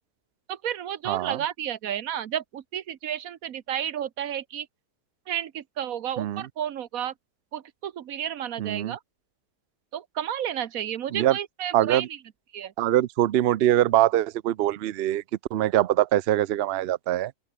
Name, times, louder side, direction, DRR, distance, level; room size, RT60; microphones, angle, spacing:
voice 1, 0.5-4.7 5.3-7.1 7.5-9.0 9.9-12.1 12.5-12.7, right 10 dB, 60° right, 1.3 m, -32 dB
voice 2, 1.1-1.4 6.2-6.5 8.6-8.9 11.1-11.4 11.7-12.1 12.8-15.2 15.5-17.3, right 13 dB, 85° right, 0.5 m, -23 dB
open air
omnidirectional pair, 1.7 m